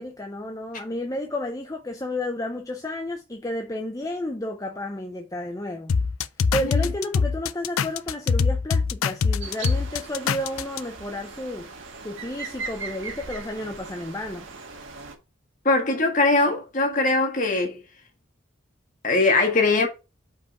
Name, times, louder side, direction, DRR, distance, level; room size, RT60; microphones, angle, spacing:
voice 1, 0.0-6.0 6.5-14.5, left 1 dB, 15° left, 0.6 m, -32 dB
sound 1, 5.9-10.8, left 5 dB, 90° left, 0.5 m, -23 dB
sound 2, 9.4-15.1, right 4 dB, 70° right, 1.5 m, -39 dB
voice 2, 15.6-17.8 19.0-19.9, left 3 dB, 40° left, 1.7 m, -21 dB
5.5 x 4.7 x 4.4 m
head